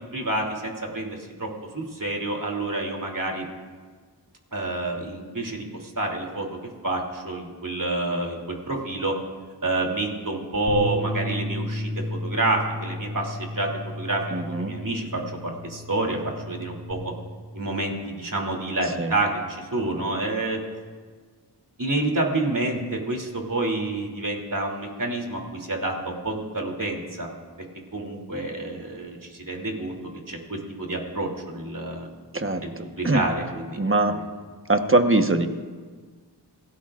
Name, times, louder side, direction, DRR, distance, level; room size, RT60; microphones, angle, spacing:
voice 1, 0.1-1.5 1.7-3.4 4.5-6.6 6.8-9.1 9.6-13.7 14.0-16.2 16.5-17.1 17.5-20.6 21.8-27.3 27.9-30.0 30.3-32.1 32.6-33.8 34.1-34.3, right 2 dB, 50° right, 0 dB, 3.0 m, -28 dB
sound 1, 10.7-16.9, equal, 50° left, 4.0 m, -33 dB
voice 2, 14.3-14.7 19.0-19.1 32.3-33.2 33.8-34.1 34.7-35.5, right 2 dB, 30° right, 6 dB, 1.2 m, -22 dB
27.5 x 17.5 x 2.5 m, 1.5 s
wide cardioid pair, 55°, 42 cm